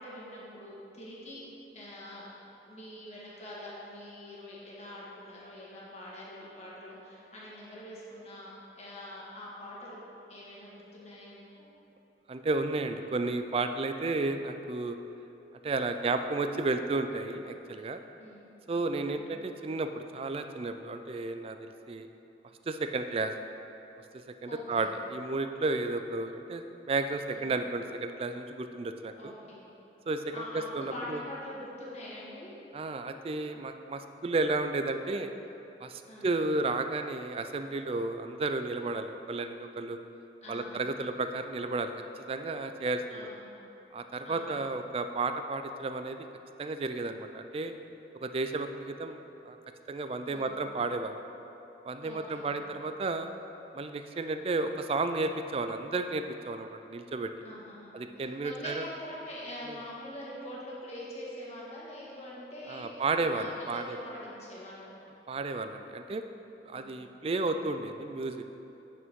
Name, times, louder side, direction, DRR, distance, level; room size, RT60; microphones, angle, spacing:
voice 1, 0.0-1.4 1.7-2.3 2.6-10.0 10.3-11.7 18.2-18.5 19.0-19.3 24.4-24.9 27.3-27.5 29.2-29.6 30.3-32.6 36.1-36.3 40.4-40.8 43.1-43.5 44.2-44.6 50.3-50.6 52.0-52.5 57.4-64.9 66.7-66.9, left 1 dB, 40° left, -7 dB, 1.6 m, -44 dB
voice 2, 12.3-15.0 15.6-18.0 18.7-22.1 22.7-23.3 24.4-29.3 30.1-31.2 32.7-35.3 35.8-40.0 40.5-41.9 42.3-43.3 43.9-46.2 46.6-47.7 48.2-49.2 49.5-49.6 49.9-51.1 51.8-53.3 53.7-57.3 57.9-58.9 59.7-59.8 62.7-64.0 65.3-66.2 66.6-68.4, right 3 dB, 35° right, 8 dB, 0.3 m, -32 dB
9.2 x 6.1 x 3.6 m, 3.0 s
head